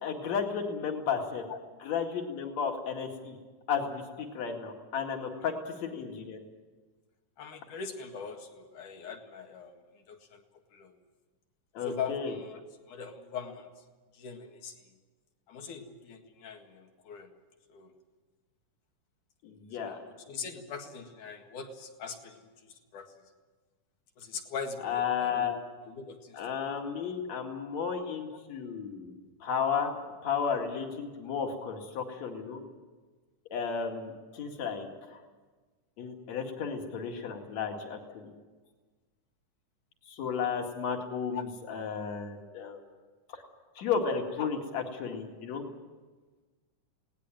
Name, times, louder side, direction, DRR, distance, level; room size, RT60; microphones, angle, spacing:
voice 1, 0.0-1.4 1.8-3.4 3.7-6.4 11.7-12.3 19.4-20.0 24.8-25.6 26.3-29.1 29.4-30.0 30.2-32.6 33.5-35.2 36.0-38.3 40.1-42.8 43.3-43.4 43.8-45.7, left 6 dB, 60° left, 3 dB, 3.3 m, -33 dB
voice 2, 7.4-10.4 10.7-11.0 11.8-12.6 12.9-13.7 14.1-15.0 15.5-17.3 17.7-17.9 19.8-22.5 22.9-23.2 24.2-25.5 25.9-26.4 41.3-41.4 44.4-44.5, left 6 dB, 75° left, 4 dB, 3.4 m, -41 dB
20.0 x 18.0 x 9.1 m, 1.3 s
omnidirectional pair, 3.6 m